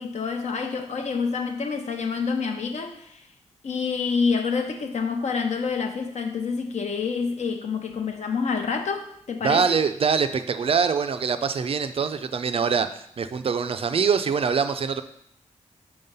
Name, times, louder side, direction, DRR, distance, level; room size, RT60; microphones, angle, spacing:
voice 1, 0.0-3.2 3.6-9.6, left 5 dB, 65° left, 5 dB, 0.8 m, -27 dB
voice 2, 9.4-15.0, right 6 dB, 50° right, 10 dB, 0.4 m, -24 dB
4.8 x 3.8 x 5.4 m, 0.71 s
wide cardioid pair, 105°, 13 cm